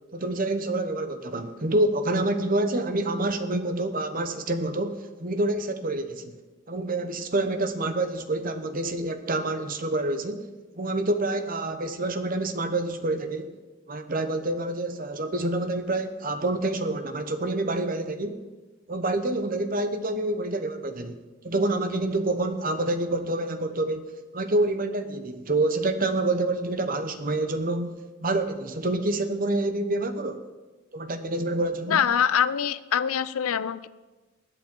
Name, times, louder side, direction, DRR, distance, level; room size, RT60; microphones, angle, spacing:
voice 1, 0.1-6.4 6.7-10.5 10.7-13.6 13.9-18.4 18.9-30.4 30.9-32.0, right 2 dB, 40° right, 9 dB, 0.9 m, -27 dB
voice 2, 31.9-33.9, left 8 dB, 80° left, 16 dB, 0.5 m, -24 dB
20.5 x 8.0 x 4.6 m, 1.2 s
head